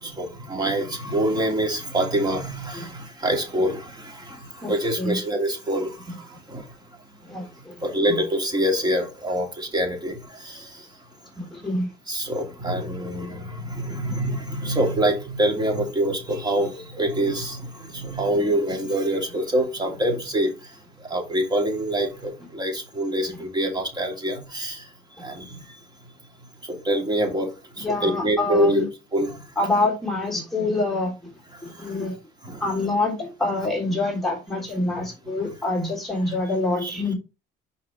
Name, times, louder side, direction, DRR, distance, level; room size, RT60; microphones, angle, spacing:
voice 1, 0.0-4.4 4.6-5.9 6.5-6.6 7.8-10.2 10.4-10.7 12.1-20.5 21.1-24.8 25.2-25.4 26.7-27.5 27.8-28.8 29.1-29.4 32.4-32.7 36.3-36.4 36.8-37.0, right 1 dB, 25° right, 2.7 m, -25 dB
voice 2, 4.6-5.2 7.3-7.7 8.1-8.2 11.4-11.9 14.1-14.2 27.8-28.9 29.6-31.3 31.6-32.1 32.6-37.1, left 2 dB, ahead, 3.2 m, -26 dB
5.5 x 4.9 x 4.9 m
cardioid pair, 110°, 17 cm